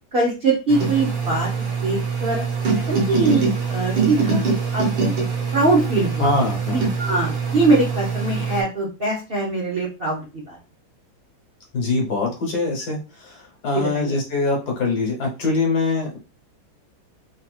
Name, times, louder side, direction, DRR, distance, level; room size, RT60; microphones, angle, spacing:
voice 1, 0.1-2.4 2.9-4.4 4.7-5.1 5.5-6.3 6.7-10.6 13.7-14.2, right 2 dB, 55° right, -2 dB, 0.6 m, -22 dB
sound 1, 0.7-8.6, right 5 dB, 80° right, 1.7 m, -23 dB
voice 2, 6.2-6.9 11.7-16.2, left 3 dB, 60° left, 0 dB, 1.6 m, -23 dB
3.9 x 2.8 x 2.3 m, 0.30 s
omnidirectional pair, 2.0 m